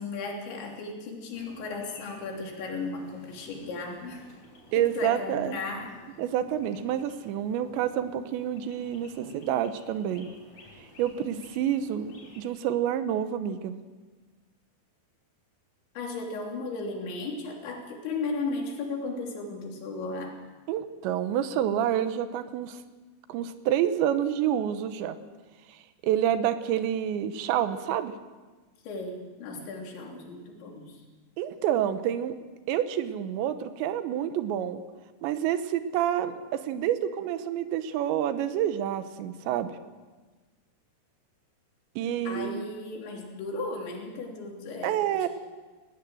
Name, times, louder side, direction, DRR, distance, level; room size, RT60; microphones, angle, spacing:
voice 1, 0.0-4.3 4.8-5.9 11.2-11.4 16.0-20.4 28.9-31.0 42.3-45.3, left 3 dB, 85° left, 0 dB, 5.4 m, -35 dB
sound 1, 1.3-12.4, left 2 dB, 35° left, 6.7 m, -54 dB
voice 2, 4.7-5.6 6.2-10.3 11.0-13.8 20.7-22.8 23.3-25.2 25.7-25.8 26.0-28.1 31.4-32.3 32.7-34.8 35.2-39.7 42.0-42.6 44.8-45.3, right 10 dB, 85° right, 11 dB, 3.3 m, -28 dB
20.0 x 17.5 x 7.8 m, 1.3 s
omnidirectional pair, 5.1 m